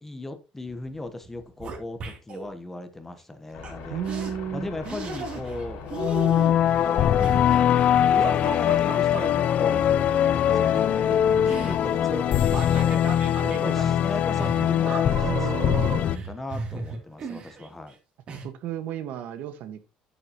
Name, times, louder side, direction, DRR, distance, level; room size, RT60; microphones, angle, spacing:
voice 1, 0.0-4.0 4.5-5.8 6.8-7.7 8.1-9.8 10.3-10.9 11.5-13.0 13.5-17.9, left 2 dB, 10° left, 9 dB, 1.1 m, -37 dB
sound 1, 0.8-2.5 3.6-3.7 4.1-4.3 4.8-5.7 5.9-9.3 10.4-17.9 18.3-18.5, right 4 dB, 40° right, 3.0 m, -36 dB
sound 2, 3.5-12.5, left 4 dB, 70° left, 4.6 m, -42 dB
voice 2, 3.9-4.7 13.4-13.5 15.2-15.9 18.4-19.8, right 10 dB, 70° right, 10 dB, 1.5 m, -33 dB
sound 3, 5.9-16.2, left 10 dB, 50° left, 0.5 m, -22 dB
9.7 x 8.8 x 3.0 m, 0.29 s
cardioid pair, 155°, 3 cm